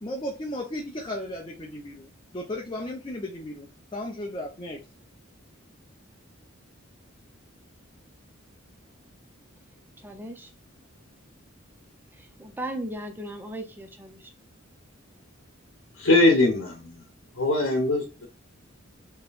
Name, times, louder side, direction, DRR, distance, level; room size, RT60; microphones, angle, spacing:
voice 1, 0.0-4.8, left 1 dB, 25° left, 0.7 m, -35 dB
voice 2, 10.0-10.5 12.4-14.2, right 1 dB, 10° right, 0.7 m, -36 dB
voice 3, 16.0-17.0 17.4-18.3, left 2 dB, 90° left, 1.3 m, -21 dB
4.4 x 3.2 x 2.5 m
head